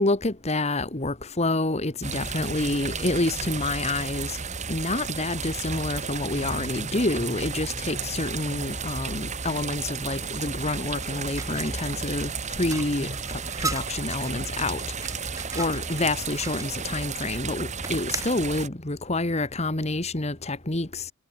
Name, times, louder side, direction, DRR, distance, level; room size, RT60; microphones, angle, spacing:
voice 1, 0.0-4.4 4.7-15.3 15.5-21.1, left 2 dB, 30° left, 1.8 m, -28 dB
sound 1, 2.0-18.7, right 5 dB, 35° right, 2.7 m, -33 dB
sound 2, 10.7-16.7 17.8-18.4, right 3 dB, 15° right, 3.6 m, -38 dB
head